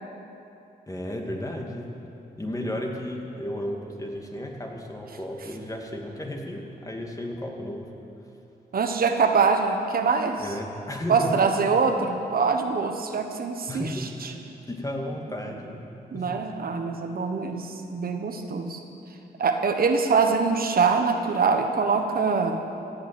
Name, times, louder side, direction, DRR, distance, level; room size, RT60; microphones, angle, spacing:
voice 1, 0.9-1.9 2.4-7.9 10.4-11.5 13.7-14.4 14.6-15.9 16.1-16.6, left 1 dB, 20° left, 1 dB, 2.4 m, -34 dB
voice 2, 8.7-10.4 11.1-14.3 16.1-18.8 19.4-22.6, right 5 dB, 65° right, 5 dB, 1.2 m, -24 dB
16.0 x 8.7 x 8.3 m, 2.7 s
cardioid pair, 65°, 17 cm